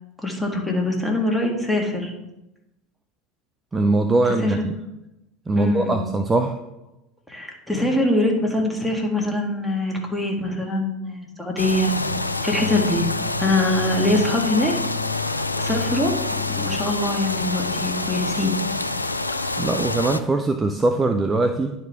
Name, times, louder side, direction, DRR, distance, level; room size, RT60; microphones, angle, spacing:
voice 1, 0.2-2.1 4.4-4.6 5.6-6.1 7.3-11.9 12.4-13.0 13.4-14.7 15.4-16.1 16.5-18.6, left 1 dB, 5° left, -1 dB, 1.9 m, -23 dB
voice 2, 3.7-4.7 5.5-6.6 19.6-21.7, right 2 dB, 20° right, 6 dB, 0.6 m, -21 dB
sound 1, 11.6-20.2, left 3 dB, 90° left, 0.3 m, -26 dB
10.5 x 4.8 x 3.6 m, 0.92 s
figure-of-eight pair, 75°, 0 cm